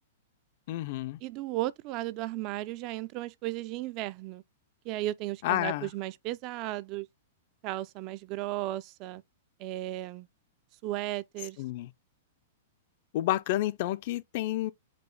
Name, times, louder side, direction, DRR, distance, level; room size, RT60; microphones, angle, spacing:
voice 1, 0.7-1.2 5.4-5.9 11.6-11.9 13.1-14.7, left 15 dB, 50° left, 0.4 m, -30 dB
voice 2, 1.2-4.4 4.8-7.1 7.6-9.2 9.6-10.3 10.8-11.6, right 16 dB, 35° right, 0.3 m, -35 dB
4.9 x 2.2 x 4.6 m
hypercardioid pair, 145°, 0 cm